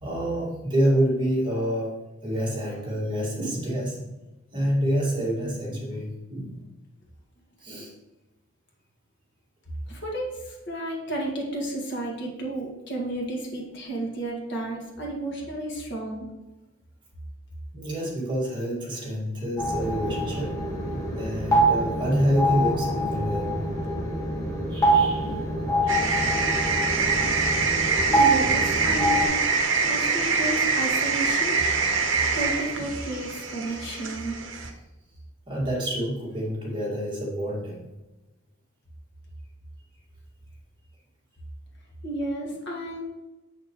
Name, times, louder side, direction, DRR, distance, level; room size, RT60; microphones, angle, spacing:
voice 1, 0.0-4.1 4.5-6.6 7.6-7.9 17.7-23.7 24.5-26.5 35.5-37.9, equal, 20° right, -5 dB, 2.0 m, -28 dB
voice 2, 9.9-16.3 27.9-29.4 29.8-31.6 32.3-34.4 42.0-43.0, right 1 dB, 50° left, -2 dB, 1.8 m, -32 dB
sound 1, 19.6-29.3, right 1 dB, 15° left, 1.6 m, -25 dB
sound 2, 25.9-34.7, right 4 dB, 60° right, 0.9 m, -25 dB
7.4 x 6.7 x 3.1 m, 1.1 s
head